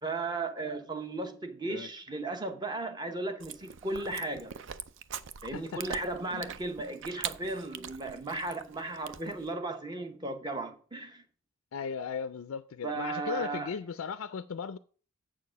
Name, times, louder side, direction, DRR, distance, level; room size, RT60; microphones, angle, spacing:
voice 1, 0.0-4.5 5.4-11.2 12.8-13.7, right 2 dB, 20° right, 0.9 m, -35 dB
Chewing mastication, 3.4-9.5, right 8 dB, 55° right, 0.5 m, -43 dB
voice 2, 11.7-14.8, left 6 dB, 70° left, 0.4 m, -37 dB
7.6 x 6.7 x 5.1 m
head